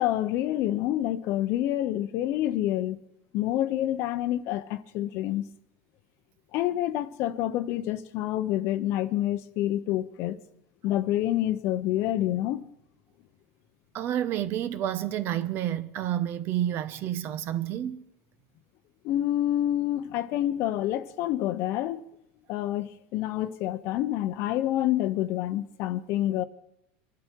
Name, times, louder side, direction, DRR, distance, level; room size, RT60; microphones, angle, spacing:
voice 1, 0.0-3.0 3.3-5.4 6.5-10.4 10.8-12.7 19.0-22.1 22.5-26.4, left 13 dB, 50° left, 0.9 m, -27 dB
voice 2, 13.9-18.0, right 11 dB, 40° right, 0.9 m, -29 dB
25.0 x 11.5 x 4.6 m
supercardioid pair, 150°, 6 cm